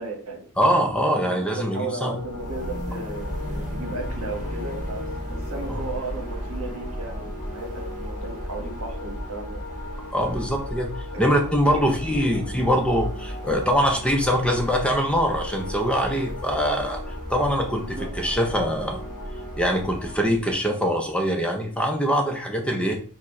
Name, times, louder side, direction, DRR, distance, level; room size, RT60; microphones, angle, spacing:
voice 1, 0.0-0.4 1.2-5.0 5.3-9.6 11.1-11.3 11.7-12.3 17.8-18.1, right 3 dB, 70° right, 2 dB, 1.2 m, -35 dB
sound 1, 0.6-20.2, left 2 dB, 70° left, 0.7 m, -39 dB
voice 2, 0.6-2.1 5.7-5.8 10.1-17.0 17.3-19.0 19.6-23.0, equal, 5° left, 3 dB, 0.4 m, -23 dB
sound 2, 2.2-20.5, equal, 35° right, 1.6 m, -35 dB
4.8 x 2.1 x 4.6 m, 0.43 s
head